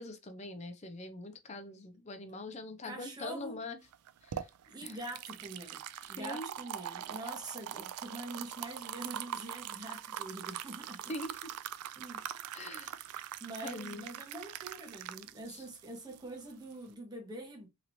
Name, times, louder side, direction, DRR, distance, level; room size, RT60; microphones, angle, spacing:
voice 1, 0.0-3.8 4.2-4.5 4.8-5.0 6.0-6.5 11.1-11.5 12.5-13.0 13.6-14.1 15.5-15.6, left 2 dB, 30° left, 0.5 m, -43 dB
voice 2, 2.8-3.6 4.7-5.8 6.1-11.0 12.0-12.2 13.4-17.7, right 1 dB, 20° right, 0.9 m, -45 dB
sound 1, 3.9-16.9, right 10 dB, 85° right, 0.3 m, -43 dB
3.0 x 2.8 x 2.6 m
head